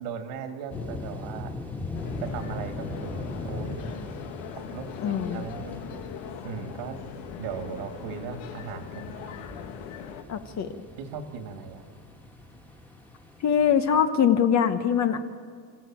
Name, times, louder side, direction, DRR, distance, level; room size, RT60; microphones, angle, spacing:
voice 1, 0.0-1.5 2.1-4.1 4.6-5.8 6.4-7.0 7.4-9.4 11.0-11.9, right 6 dB, 85° right, 6 dB, 2.7 m, -38 dB
sound 1, 0.7-14.0, left 2 dB, 5° left, 1.9 m, -40 dB
sound 2, 1.9-10.2, left 8 dB, 80° left, 2.0 m, -41 dB
voice 2, 5.0-5.4 10.3-10.7 13.4-15.2, left 8 dB, 35° left, 9 dB, 1.0 m, -23 dB
28.0 x 14.5 x 9.1 m, 2.1 s
cardioid pair, 170°, 49 cm